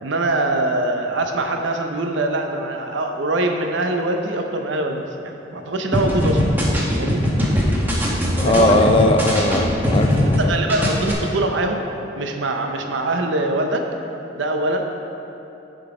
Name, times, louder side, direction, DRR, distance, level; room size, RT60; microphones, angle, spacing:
voice 1, 0.0-6.4 7.0-7.2 8.4-8.9 10.4-11.8 12.2-13.9 14.3-14.9, right 2 dB, 75° right, 4 dB, 0.7 m, -23 dB
sound 1, 5.9-10.4 10.7-11.1, equal, 10° right, 0.9 m, -20 dB
voice 2, 8.4-10.5, left 1 dB, 30° left, 4 dB, 0.4 m, -19 dB
10.5 x 3.9 x 4.8 m, 2.9 s
head